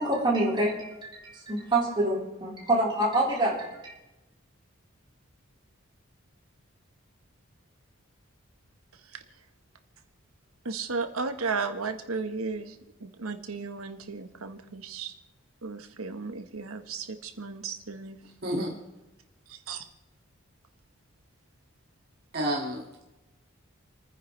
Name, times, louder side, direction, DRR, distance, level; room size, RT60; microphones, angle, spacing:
voice 1, 0.0-3.9, right 1 dB, 20° right, -5 dB, 4.2 m, -27 dB
voice 2, 10.6-12.7 13.0-15.1 15.6-18.2 19.7-19.8, right 4 dB, 85° right, 7 dB, 1.3 m, -34 dB
voice 3, 18.4-18.7 22.3-23.1, equal, 45° right, -2 dB, 2.2 m, -30 dB
29.5 x 9.8 x 3.3 m, 1.0 s
head